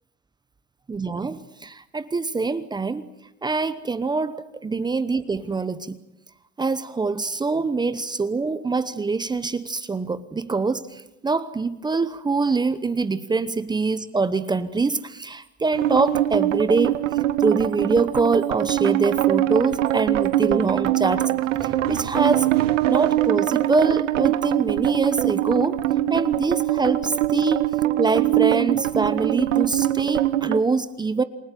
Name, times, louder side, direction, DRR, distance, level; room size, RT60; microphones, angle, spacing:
voice 1, 0.9-3.1 3.4-6.0 6.6-17.0 17.4-21.3 21.6-25.8 26.1-27.6 28.0-31.2, right 4 dB, 10° right, 1.0 m, -24 dB
sound 1, 15.7-30.6, right 14 dB, 75° right, 1.5 m, -23 dB
28.5 x 18.0 x 9.1 m
hypercardioid pair, 115°, 38 cm